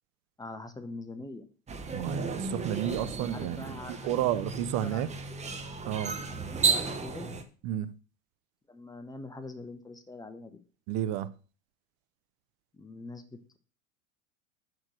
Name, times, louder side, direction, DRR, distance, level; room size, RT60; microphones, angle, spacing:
voice 1, 0.4-1.5 3.3-4.2 4.8-5.0 5.3-5.6 6.3-7.4 8.7-10.6 12.7-13.6, left 2 dB, 10° left, 1.0 m, -44 dB
sound 1, 1.7-7.4, right 4 dB, 15° right, 1.0 m, -33 dB
voice 2, 1.9-3.7 4.0-5.1 5.8-6.2 7.6-7.9 10.9-11.3, right 12 dB, 40° right, 0.6 m, -31 dB
6.5 x 6.4 x 6.3 m
figure-of-eight pair, 90°, 42 cm